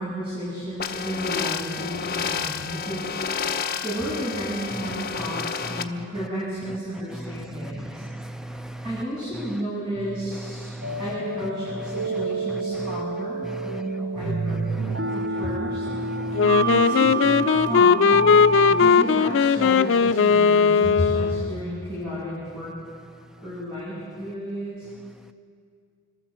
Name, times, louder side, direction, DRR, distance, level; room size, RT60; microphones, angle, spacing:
voice 1, 0.0-3.1 3.8-8.1 8.8-10.7 11.0-15.8 16.6-18.3 18.7-22.7 23.4-24.9, equal, 30° right, -9 dB, 7.6 m, -32 dB
sound 1, 0.8-5.8, left 6 dB, 55° left, 0.8 m, -30 dB
voice 2, 7.8-8.8 10.6-11.0 13.5-13.8 14.8-15.1 15.9-16.7 18.6-18.8, right 1 dB, 5° right, 7 dB, 0.6 m, -36 dB
sound 2, 10.8-20.9, right 3 dB, 75° right, 0.8 m, -29 dB
Wind instrument woodwind instrument, 16.3-21.5, left 6 dB, 85° left, 0.4 m, -18 dB
26.5 x 13.0 x 7.6 m, 2.3 s
head